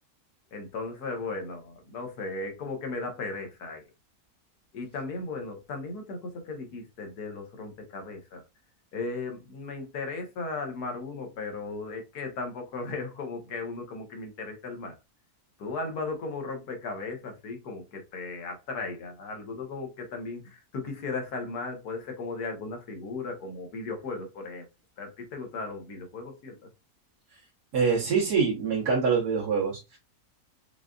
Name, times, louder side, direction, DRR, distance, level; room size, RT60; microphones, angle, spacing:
voice 1, 0.5-3.8 4.7-8.4 8.9-14.9 15.6-24.6 25.0-26.6, left 3 dB, 80° left, 1.6 m, -36 dB
voice 2, 27.7-30.0, right 5 dB, 85° right, 1.8 m, -25 dB
5.6 x 2.5 x 2.3 m
omnidirectional pair, 1.6 m